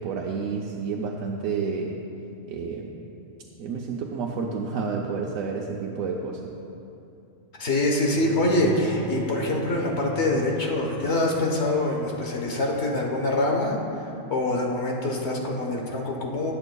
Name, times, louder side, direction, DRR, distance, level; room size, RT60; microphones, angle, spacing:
voice 1, 0.0-2.0 2.5-3.0 3.6-6.5, right 5 dB, 90° right, -1 dB, 1.1 m, -30 dB
voice 2, 7.6-13.7 14.3-16.5, left 2 dB, 55° left, 0 dB, 1.3 m, -25 dB
Bowed string instrument, 8.2-14.2, right 2 dB, 25° left, 0.5 m, -40 dB
17.5 x 7.7 x 2.3 m, 2.7 s
omnidirectional pair, 1.4 m